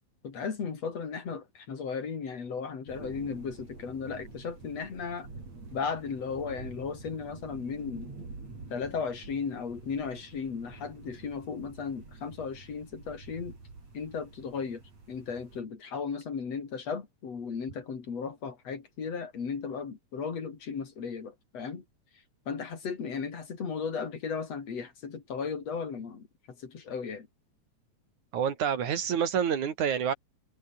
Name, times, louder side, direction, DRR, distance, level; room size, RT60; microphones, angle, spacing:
voice 1, 0.2-5.3 5.7-8.1 8.7-13.6 13.9-14.8 15.1-21.8 22.5-26.3 26.6-27.3, left 5 dB, 60° left, 4.3 m, -35 dB
sound 1, 2.9-15.6, right 3 dB, 60° right, 7.7 m, -47 dB
voice 2, 28.3-30.1, right 8 dB, 80° right, 3.8 m, -28 dB
omnidirectional pair, 3.4 m